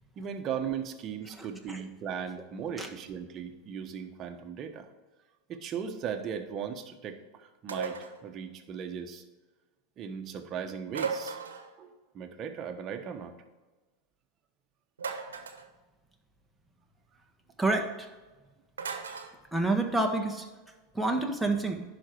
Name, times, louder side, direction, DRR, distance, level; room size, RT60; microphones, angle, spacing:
voice 1, 0.2-4.9 5.5-9.2 10.0-11.4 11.8-13.3, right 7 dB, 40° right, 6 dB, 1.2 m, -37 dB
voice 2, 1.4-1.8 2.8-2.9 17.6-17.9 19.5-20.4 20.9-21.8, right 2 dB, 5° right, 2 dB, 1.5 m, -28 dB
sound 1, 7.7-8.2 10.9-11.7 15.0-15.7 18.8-19.3, right 5 dB, 85° right, 1.0 m, -36 dB
11.0 x 5.2 x 4.6 m, 1.2 s
hypercardioid pair, 95°, 0 cm